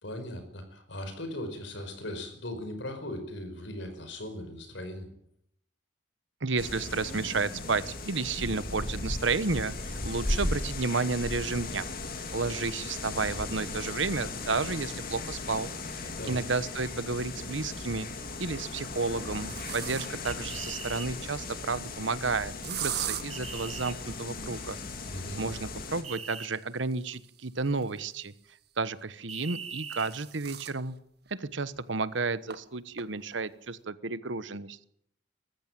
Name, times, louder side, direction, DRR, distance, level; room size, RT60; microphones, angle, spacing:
voice 1, 0.0-5.1 16.2-16.4 25.1-25.4, left 1 dB, 65° left, 7 dB, 5.1 m, -38 dB
voice 2, 6.4-11.9 12.3-15.7 16.3-18.1 18.4-24.8 25.4-28.3 28.8-30.9 31.3-34.8, right 4 dB, 70° right, 15 dB, 1.1 m, -32 dB
sound 1, 6.6-26.0, left 2 dB, 45° left, 2.7 m, -37 dB
sound 2, 17.8-18.2 18.8-20.4 22.6-23.2 25.8-28.5 29.5-30.8 31.3-31.4 31.7-31.8 32.5-32.6 33.0-33.4, right 11 dB, 55° right, 1.5 m, -40 dB
sound 3, 20.3-21.1 23.3-24.0 26.0-26.5 29.3-30.1, right 6 dB, 30° right, 1.3 m, -40 dB
20.5 x 14.5 x 9.1 m, 0.72 s
head